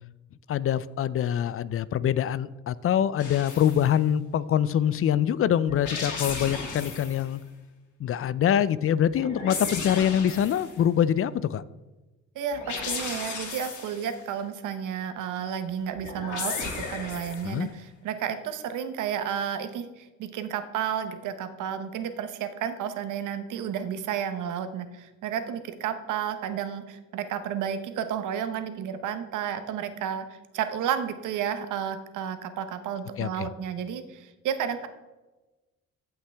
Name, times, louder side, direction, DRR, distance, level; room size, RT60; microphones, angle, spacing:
voice 1, 0.5-7.4 8.0-11.6 17.4-17.7 33.2-33.5, left 9 dB, 45° left, 18 dB, 0.4 m, -24 dB
sound 1, 3.2-3.9 5.7-7.3 9.1-10.8 12.5-14.1 16.0-17.6, left 4 dB, 75° left, 2.4 m, -35 dB
voice 2, 12.3-30.2 30.5-34.9, right 8 dB, 80° right, 10 dB, 0.9 m, -32 dB
15.0 x 5.8 x 3.4 m, 1.1 s
cardioid pair, 90°, 30 cm